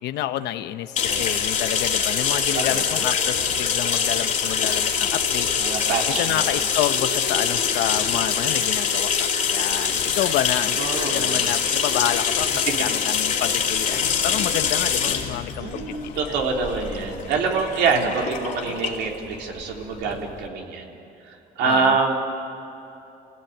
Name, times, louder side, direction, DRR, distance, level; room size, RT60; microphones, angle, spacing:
voice 1, 0.0-5.5 6.1-16.2 17.9-18.1 18.7-18.8 21.6-22.0, left 12 dB, 80° left, 10 dB, 1.1 m, -29 dB
sound 1, 1.0-20.4, left 7 dB, 50° left, 2.8 m, -24 dB
voice 2, 5.6-6.5 10.7-11.4 15.6-20.9 21.3-22.1, right 5 dB, 85° right, 1 dB, 3.4 m, -25 dB
28.0 x 17.0 x 9.3 m, 3.0 s
cardioid pair, 110°, 17 cm